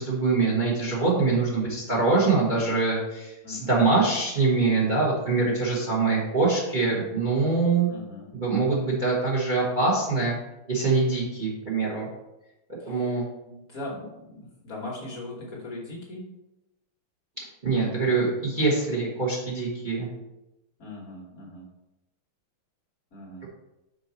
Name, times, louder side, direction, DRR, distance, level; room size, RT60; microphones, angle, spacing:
voice 1, 0.0-7.9 8.3-10.4 10.7-12.1 12.7-13.3 17.6-20.1, right 3 dB, 25° right, -4 dB, 1.1 m, -24 dB
voice 2, 3.4-3.8 7.9-8.3 12.8-13.2 13.5-16.2 20.8-21.7 23.1-23.5, left 2 dB, 45° left, -4 dB, 1.5 m, -39 dB
5.5 x 4.6 x 4.4 m, 0.93 s
omnidirectional pair, 2.4 m